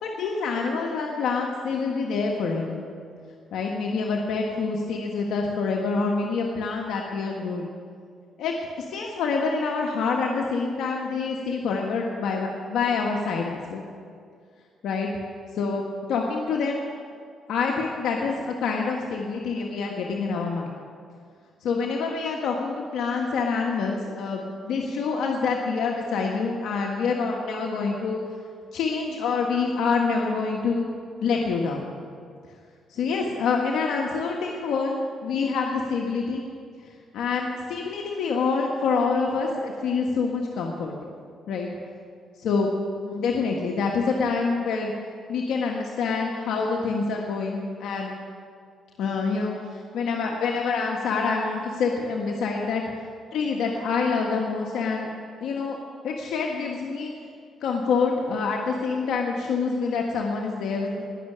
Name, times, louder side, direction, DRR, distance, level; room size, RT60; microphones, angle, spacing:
voice 1, 0.0-2.8 3.5-7.7 8.4-13.8 14.8-15.1 15.6-15.8 16.1-16.8 17.5-20.7 21.6-28.2 28.7-30.9 31.2-31.9 32.9-36.4 37.1-40.9 41.5-41.7 42.4-42.7 43.0-44.9 45.3-48.1 49.0-49.6 49.9-52.8 53.3-55.1 55.4-55.8 56.0-57.1 57.6-61.0, left 4 dB, 80° left, 0 dB, 1.4 m, -26 dB
20.0 x 6.7 x 8.6 m, 2.2 s
cardioid pair, 90°, 0 cm